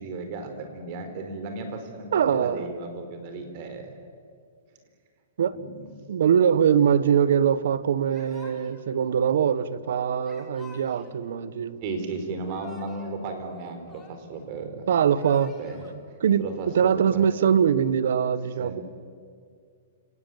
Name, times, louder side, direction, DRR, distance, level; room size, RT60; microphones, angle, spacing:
voice 1, 0.0-3.9 5.5-5.8 11.8-14.8 15.6-15.8 16.4-17.2 18.6-18.8, right 3 dB, 40° right, 4.5 m, -35 dB
voice 2, 2.1-2.7 5.4-5.6 6.1-11.8 14.9-15.5 16.2-16.4 16.7-18.8, right 8 dB, 75° right, 1.3 m, -22 dB
Yell / Crying sobbing, 8.1-8.9 10.2-11.2 12.3-13.2 13.5-14.4 15.0-15.9, left 4 dB, 10° left, 3.7 m, -51 dB
29.0 x 18.5 x 9.5 m
hypercardioid pair, 155°, 0 cm